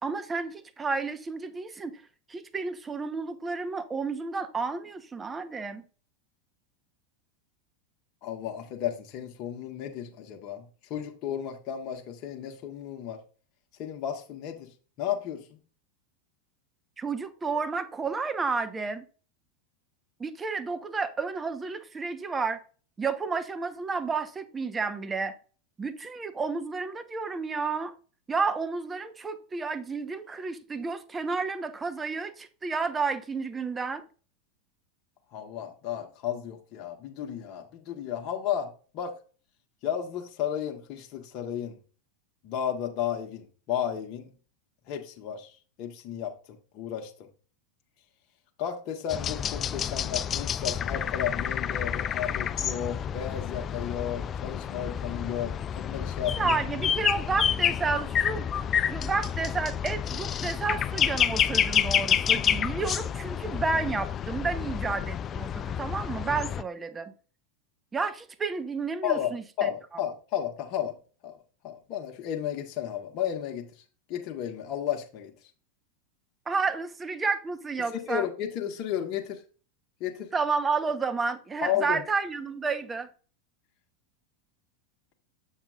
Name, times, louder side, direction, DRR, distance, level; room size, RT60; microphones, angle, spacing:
voice 1, 0.0-2.0 2.3-5.8 17.0-19.0 20.2-22.6 23.0-25.3 25.8-27.9 28.3-34.0 56.4-58.5 58.9-67.1 67.9-69.7 76.5-78.3 80.3-83.1, right 4 dB, 20° right, 1.0 m, -31 dB
voice 2, 8.2-10.6 10.9-13.2 13.8-14.7 15.0-15.6 35.3-38.7 38.9-39.1 39.8-41.8 42.4-44.3 44.9-47.3 48.6-56.5 69.0-69.3 69.6-71.0 71.2-71.4 71.6-73.8 74.1-75.3 77.9-79.4 80.0-80.3 81.6-82.0, left 9 dB, 50° left, 1.3 m, -33 dB
sound 1, 49.1-66.6, left 8 dB, 30° left, 0.4 m, -29 dB
7.3 x 7.1 x 2.5 m
hypercardioid pair, 105°, 0 cm